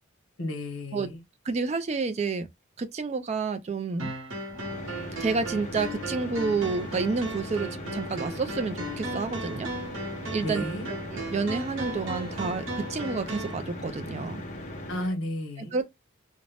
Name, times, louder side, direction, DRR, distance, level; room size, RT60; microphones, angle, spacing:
voice 1, 0.4-1.2 10.4-10.9 14.9-15.8, left 1 dB, 75° left, 1.0 m, -33 dB
voice 2, 1.4-2.5 2.8-4.1 5.2-9.7 10.3-14.4 15.6-15.9, right 4 dB, 30° right, 0.3 m, -30 dB
sound 1, 4.0-13.6, right 1 dB, 80° right, 1.0 m, -37 dB
sound 2, 4.5-15.2, left 1 dB, 35° left, 0.6 m, -39 dB
2.5 x 2.1 x 3.2 m
head